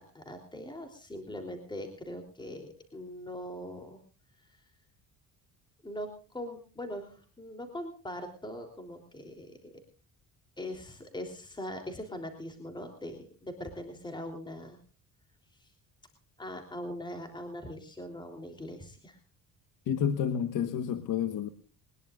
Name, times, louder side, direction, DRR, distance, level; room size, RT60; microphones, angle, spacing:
voice 1, 0.0-4.0 4.4-4.7 5.8-9.7 10.6-14.8 15.5-15.7 16.4-19.2, left 1 dB, 15° left, 5 dB, 3.4 m, -41 dB
voice 2, 19.8-21.5, left 8 dB, 60° left, 10 dB, 1.4 m, -30 dB
22.0 x 21.0 x 2.5 m, 0.38 s
cardioid pair, 105°, 35 cm